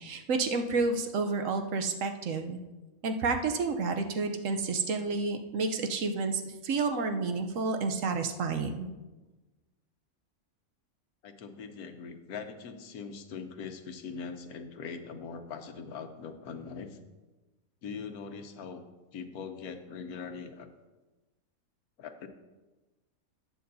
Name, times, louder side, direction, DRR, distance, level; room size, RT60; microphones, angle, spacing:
voice 1, 0.0-2.6 3.0-8.9, right 4 dB, 65° right, 6 dB, 1.1 m, -30 dB
voice 2, 11.2-17.0 17.8-18.8 19.1-20.7 22.0-22.3, left 5 dB, 90° left, 7 dB, 1.3 m, -41 dB
14.0 x 8.7 x 2.7 m, 1.2 s
omnidirectional pair, 1.5 m